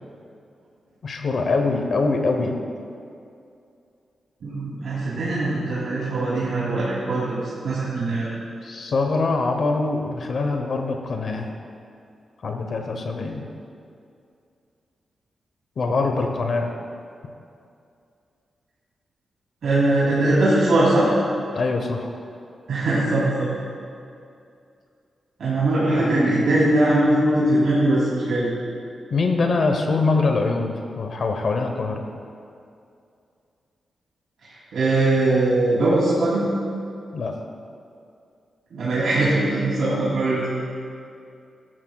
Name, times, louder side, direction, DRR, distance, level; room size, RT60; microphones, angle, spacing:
voice 1, 1.0-2.6 8.6-11.5 12.4-13.4 15.8-16.7 21.5-22.1 25.9-26.2 29.1-32.0 37.1-37.3, left 3 dB, 50° left, 4 dB, 0.9 m, -23 dB
voice 2, 4.4-8.3 19.6-21.1 22.7-23.5 25.4-28.5 34.4-36.5 38.7-40.5, right 2 dB, 75° right, -9 dB, 2.8 m, -21 dB
17.5 x 12.5 x 2.3 m, 2.5 s
wide cardioid pair, 175°, 0 cm